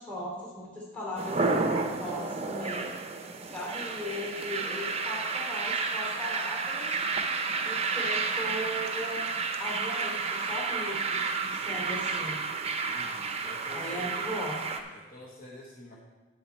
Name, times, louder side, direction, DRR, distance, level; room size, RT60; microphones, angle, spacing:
voice 1, 0.0-1.4 1.9-2.9 3.5-6.9 7.6-9.2 9.6-12.4 13.6-14.6, left 1 dB, 5° left, -5 dB, 3.3 m, -37 dB
sound 1, 1.2-14.8, right 4 dB, 30° right, 0.6 m, -31 dB
voice 2, 12.6-14.2 14.9-16.0, left 1 dB, 45° left, -3 dB, 1.2 m, -48 dB
8.5 x 8.3 x 4.4 m, 1.2 s
head